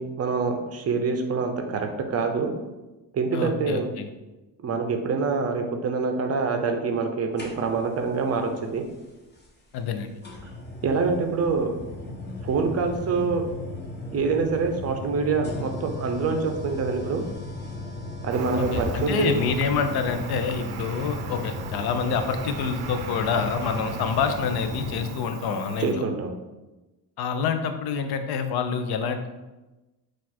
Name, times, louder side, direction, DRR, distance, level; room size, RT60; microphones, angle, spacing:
voice 1, 0.0-2.5 3.1-3.9 4.6-8.8 10.8-11.7 12.4-13.4 14.1-17.2 18.2-19.4 25.8-26.3, right 4 dB, 35° right, 5 dB, 0.5 m, -25 dB
voice 2, 3.3-4.1 9.7-10.1 18.6-26.0 27.2-29.3, left 6 dB, 60° left, 7 dB, 0.6 m, -27 dB
sound 1, 7.4-8.0 9.4-9.5 10.2-25.2, left 2 dB, 25° left, 0.8 m, -36 dB
Cricket, 18.3-25.9, right 6 dB, 80° right, 0.6 m, -38 dB
4.2 x 2.5 x 4.2 m, 1.1 s
cardioid pair, 125°, 43 cm